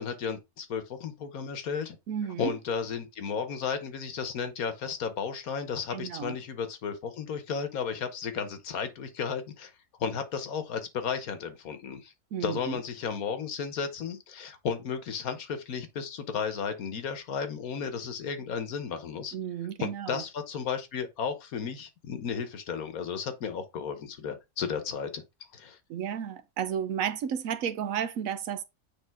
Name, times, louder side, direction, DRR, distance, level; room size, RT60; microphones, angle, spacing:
voice 1, 0.0-2.0 2.4-9.7 10.0-12.1 12.4-19.3 19.8-25.2 25.5-25.8, left 6 dB, 85° left, 1.5 m, -34 dB
voice 2, 2.1-2.5 5.9-6.4 12.3-12.8 19.3-20.2 25.9-28.6, right 8 dB, 75° right, 1.1 m, -32 dB
8.7 x 3.3 x 3.5 m
omnidirectional pair, 1.5 m